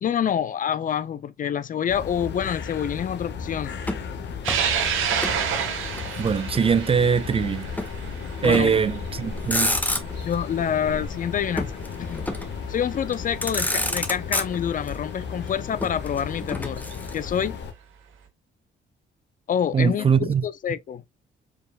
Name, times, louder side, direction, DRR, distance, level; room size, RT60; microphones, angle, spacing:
voice 1, 0.0-3.8 8.4-8.7 10.2-11.7 12.0-12.2 12.7-16.8 17.1-17.6 19.5-20.1 20.4-21.0, left 8 dB, 45° left, 0.4 m, -27 dB
sound 1, 1.9-17.7, left 6 dB, 60° left, 0.9 m, -35 dB
Motor vehicle (road), 3.8-5.4 5.7-6.8 7.8-8.0 8.4-8.9 9.3-10.4 11.6-12.6 13.1-13.2 13.4-14.9 15.8-17.4, left 1 dB, 10° left, 0.8 m, -30 dB
sound 2, 4.4-11.1 11.6-11.7 12.9-13.0 15.2-15.3 16.7-16.9, right 8 dB, 85° right, 1.0 m, -29 dB
voice 2, 6.2-7.7 8.4-9.8 19.7-20.5, right 6 dB, 30° right, 0.3 m, -22 dB
4.7 x 3.1 x 2.3 m
cardioid pair, 90°, 20 cm